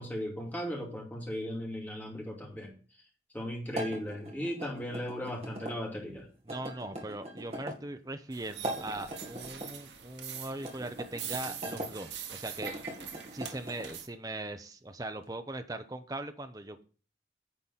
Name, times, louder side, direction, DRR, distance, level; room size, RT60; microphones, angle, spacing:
voice 1, 0.0-2.7 3.3-6.3, equal, 10° left, -1 dB, 2.3 m, -37 dB
sound 1, 3.7-5.7 6.5-7.8 8.5-9.7 10.6-11.9 12.5-13.9, right 1 dB, 35° right, 2.2 m, -41 dB
voice 2, 6.5-12.7 13.3-16.8, right 2 dB, 20° right, 8 dB, 0.7 m, -40 dB
sound 2, 8.3-14.1, right 8 dB, 85° right, 1.4 m, -43 dB
9.9 x 4.0 x 7.2 m, 0.38 s
head